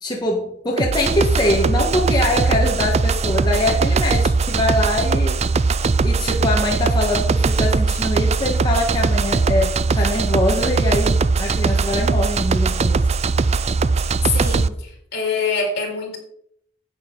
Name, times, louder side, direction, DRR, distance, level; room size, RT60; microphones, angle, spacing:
voice 1, 0.0-5.4 6.0-13.0, left 1 dB, 25° left, -2 dB, 1.5 m, -23 dB
sound 1, 0.8-14.7, right 4 dB, 35° right, 0.4 m, -20 dB
voice 2, 14.3-16.2, left 4 dB, 60° left, -1 dB, 4.3 m, -25 dB
10.5 x 9.1 x 3.9 m, 0.70 s
head